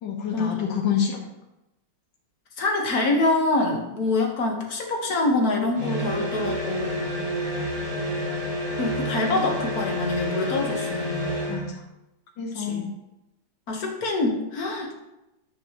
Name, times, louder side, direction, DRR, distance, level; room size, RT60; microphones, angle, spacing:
voice 1, 0.0-1.2 11.5-11.8 12.4-12.9, left 7 dB, 80° left, -1 dB, 1.9 m, -27 dB
voice 2, 2.6-7.1 8.8-11.2 12.4-12.9 13.7-14.9, left 2 dB, 55° left, 1 dB, 1.8 m, -25 dB
sound 1, 5.7-11.7, equal, 75° right, 3.6 m, -29 dB
10.0 x 7.8 x 3.0 m, 0.92 s
omnidirectional pair, 2.0 m